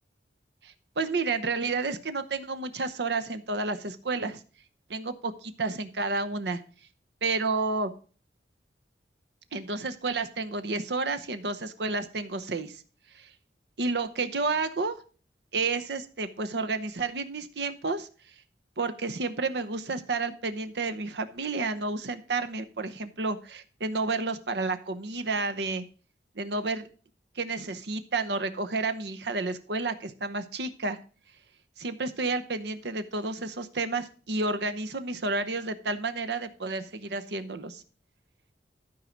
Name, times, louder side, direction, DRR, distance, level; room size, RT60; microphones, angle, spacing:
voice 1, 0.6-4.4 4.9-6.6 7.2-7.9 9.5-12.8 13.1-13.3 13.8-15.0 15.5-18.1 18.8-25.9 26.4-26.9 27.3-31.0 31.8-37.8, right 3 dB, 70° right, 10 dB, 0.8 m, -31 dB
12.0 x 4.8 x 5.1 m, 0.39 s
head